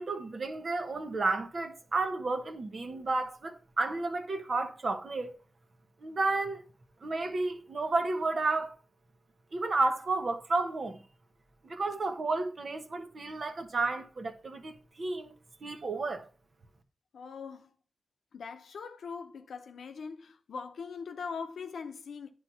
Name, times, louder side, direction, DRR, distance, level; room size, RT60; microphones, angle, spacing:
voice 1, 0.0-5.4 6.0-6.6 7.0-8.8 9.5-11.0 11.6-15.3 15.6-16.3, right 3 dB, 60° right, 1.1 m, -32 dB
voice 2, 17.1-17.7 18.3-22.3, left 5 dB, 80° left, 0.7 m, -41 dB
9.4 x 3.2 x 5.6 m
cardioid pair, 40°, 0 cm